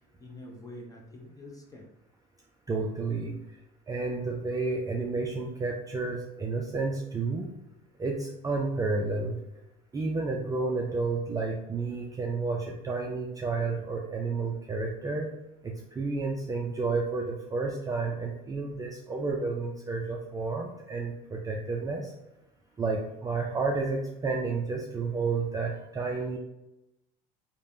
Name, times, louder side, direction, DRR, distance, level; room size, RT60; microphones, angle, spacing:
voice 1, 0.2-1.9 25.7-26.3, left 1 dB, 20° left, 0 dB, 0.6 m, -47 dB
voice 2, 2.7-3.4 3.9-7.5 8.0-9.4 9.9-15.3 15.6-22.1 22.8-26.4, right 3 dB, 20° right, -1 dB, 0.3 m, -31 dB
3.2 x 2.1 x 2.5 m, 0.90 s
supercardioid pair, 95°, 19 cm